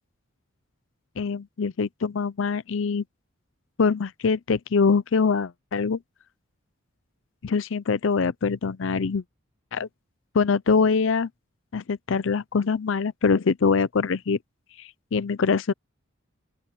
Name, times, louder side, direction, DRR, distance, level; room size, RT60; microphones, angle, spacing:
voice 1, 1.2-3.0 3.8-6.0 7.4-9.2 9.7-9.9 10.3-11.3 11.7-14.4 14.8-15.7, left 5 dB, 65° left, 0.5 m, -24 dB
open air
head